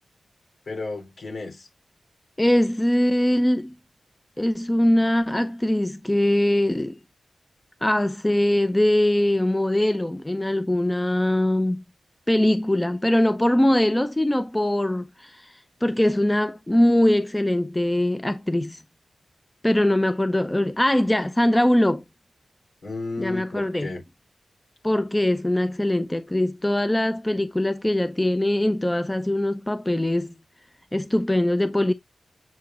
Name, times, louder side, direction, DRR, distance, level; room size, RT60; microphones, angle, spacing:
voice 1, 0.6-1.7 22.8-24.0, left 3 dB, 65° left, 3.3 m, -33 dB
voice 2, 2.4-3.7 4.4-7.0 7.8-11.8 12.3-18.8 19.6-22.0 23.2-23.9 24.8-30.3 30.9-31.9, left 1 dB, 15° left, 0.6 m, -22 dB
7.4 x 5.9 x 2.4 m
wide cardioid pair, 95°, 0 cm